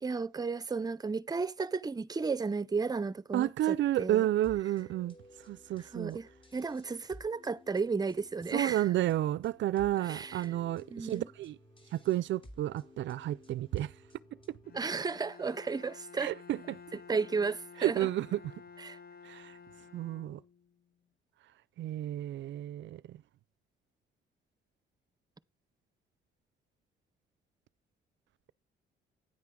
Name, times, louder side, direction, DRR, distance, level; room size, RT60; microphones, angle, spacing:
voice 1, 0.0-4.3 5.8-8.9 10.0-10.5 10.9-11.3 14.7-16.3 16.9-18.1 18.8-19.0, right 4 dB, 20° right, 0.7 m, -34 dB
voice 2, 3.3-5.1 5.5-6.2 8.5-11.6 11.9-13.9 16.2-16.8 17.8-18.4 19.2-19.6 19.9-20.4 21.8-23.2, right 13 dB, 70° right, 0.5 m, -31 dB
sound 1, 4.4-15.1, left 1 dB, 25° left, 2.9 m, -56 dB
Bowed string instrument, 14.6-20.8, left 6 dB, 50° left, 1.3 m, -52 dB
10.0 x 9.3 x 3.7 m
cardioid pair, 90°, 20 cm